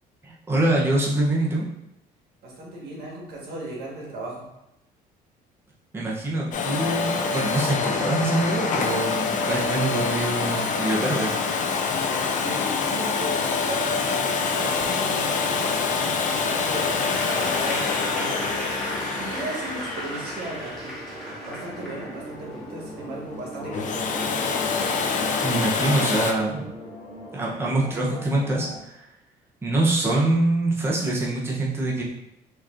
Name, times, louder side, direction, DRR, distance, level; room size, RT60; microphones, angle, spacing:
voice 1, 0.2-1.6 5.9-11.3 25.4-26.7 27.3-29.1 29.6-32.0, right 2 dB, 15° right, -4 dB, 0.7 m, -24 dB
voice 2, 2.4-4.4 11.8-20.9 21.4-24.1, right 2 dB, 70° right, -3 dB, 1.4 m, -37 dB
Domestic sounds home sounds, 6.5-21.3 23.6-26.3, left 5 dB, 50° left, 0.5 m, -26 dB
sound 1, 13.3-28.8, equal, 40° right, 1.4 m, -41 dB
Applause / Crowd, 16.3-22.5, equal, ahead, 1.4 m, -34 dB
4.4 x 2.9 x 2.5 m, 0.86 s
cardioid pair, 110°, 17 cm